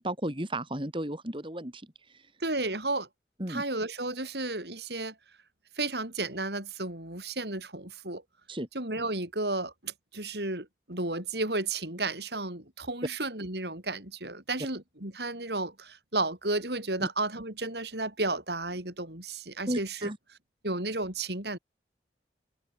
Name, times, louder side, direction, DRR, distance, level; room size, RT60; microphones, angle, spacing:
voice 1, 0.0-2.3 3.4-3.6 8.5-8.7 17.0-17.1 19.7-20.2, right 1 dB, 30° right, 4.0 m, -34 dB
voice 2, 2.4-3.1 3.5-5.1 5.8-8.2 8.7-20.1 20.6-21.6, right 2 dB, 65° right, 7.5 m, -33 dB
head